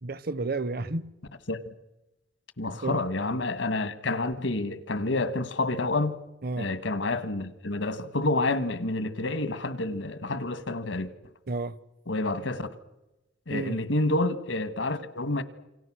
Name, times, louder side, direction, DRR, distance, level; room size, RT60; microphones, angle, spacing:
voice 1, 0.0-1.1 2.8-3.0 6.4-6.7 11.5-11.8 13.5-13.8, right 3 dB, 55° right, 0.9 m, -31 dB
voice 2, 2.6-6.2 6.6-11.1 12.1-12.7 13.5-15.4, left 2 dB, 85° left, 1.6 m, -29 dB
27.5 x 25.0 x 6.3 m
head